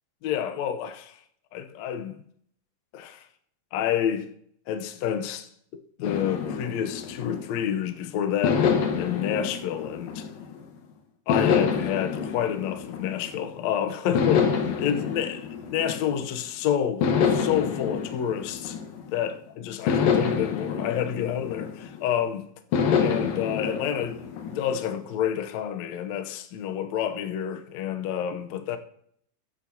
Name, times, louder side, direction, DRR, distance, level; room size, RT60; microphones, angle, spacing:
voice 1, 0.2-1.2 1.5-2.2 2.9-3.2 3.7-4.3 4.7-5.5 6.0-8.7 9.0-10.3 11.3-18.8 19.1-22.5 23.0-28.8, left 9 dB, 90° left, 1.5 m, -29 dB
sound 1, 6.0-7.8 8.4-10.7 11.3-13.6 14.1-16.4 17.0-19.3 19.9-22.1 22.7-25.0, left 6 dB, 70° left, 2.8 m, -27 dB
15.5 x 8.9 x 2.8 m
omnidirectional pair, 4.4 m